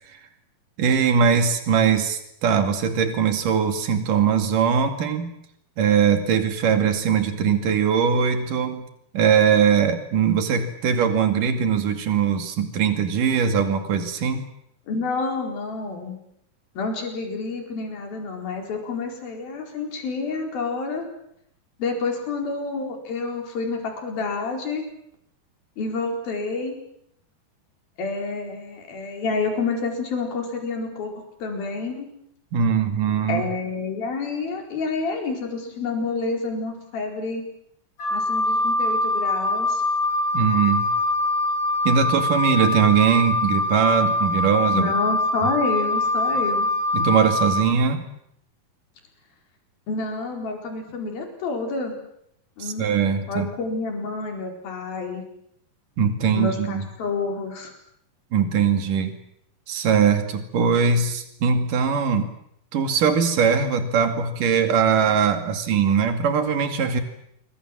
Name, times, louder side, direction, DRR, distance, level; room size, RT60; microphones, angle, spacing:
voice 1, 0.8-5.3 5.8-8.9 9.1-14.5 32.5-33.5 40.3-40.9 41.9-44.9 45.4-45.5 46.9-48.1 52.6-53.5 56.0-56.9 58.3-59.1 59.7-62.3 62.7-67.0, right 6 dB, 60° right, 7 dB, 3.9 m, -21 dB
voice 2, 14.9-16.2 16.8-21.1 21.8-24.8 25.8-26.8 28.0-31.1 31.4-32.1 33.3-37.4 38.1-39.8 44.7-46.7 49.9-51.9 52.6-52.8 53.3-55.2 56.3-57.7, left 4 dB, 75° left, 3 dB, 6.2 m, -28 dB
Wind instrument woodwind instrument, 38.0-47.6, left 2 dB, 50° left, 8.0 m, -23 dB
27.0 x 23.5 x 7.6 m, 0.73 s
omnidirectional pair, 4.3 m